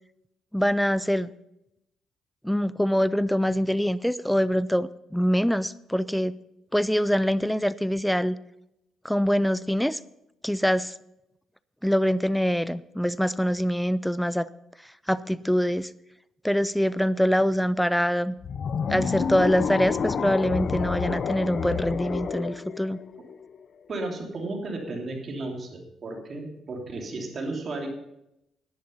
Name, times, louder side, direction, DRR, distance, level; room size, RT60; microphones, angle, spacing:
voice 1, 0.5-1.3 2.4-6.4 6.7-8.4 9.0-10.0 10.4-10.9 11.8-14.5 15.1-15.9 16.4-18.3 18.9-23.0, equal, ahead, 17 dB, 0.4 m, -24 dB
sound 1, 18.4-23.7, left 6 dB, 55° left, 0.7 m, -29 dB
voice 2, 23.9-27.9, right 2 dB, 45° right, 1 dB, 3.1 m, -34 dB
11.0 x 10.5 x 5.5 m, 0.84 s
cardioid pair, 90°, 0 cm